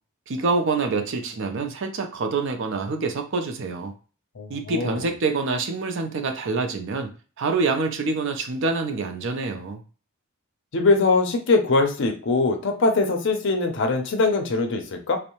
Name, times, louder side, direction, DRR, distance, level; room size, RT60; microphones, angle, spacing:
voice 1, 0.3-3.9 4.5-7.1 7.4-9.8, right 3 dB, 60° right, 6 dB, 0.4 m, -26 dB
voice 2, 4.4-5.0 10.7-15.2, left 3 dB, 60° left, 5 dB, 0.5 m, -22 dB
2.6 x 2.0 x 2.9 m, 0.37 s
head